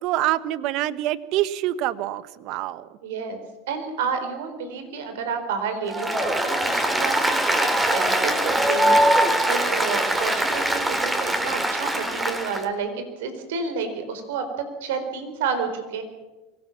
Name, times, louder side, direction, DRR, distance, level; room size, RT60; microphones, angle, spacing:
voice 1, 0.0-2.9, right 14 dB, 60° right, 16 dB, 1.1 m, -26 dB
voice 2, 3.0-3.4 3.7-14.5 14.8-16.0, right 5 dB, 80° right, 7 dB, 4.4 m, -30 dB
Applause, 5.9-12.6, right 1 dB, 15° right, 3.5 m, -22 dB
24.0 x 18.0 x 7.3 m, 1.1 s
hypercardioid pair, 100°, 0 cm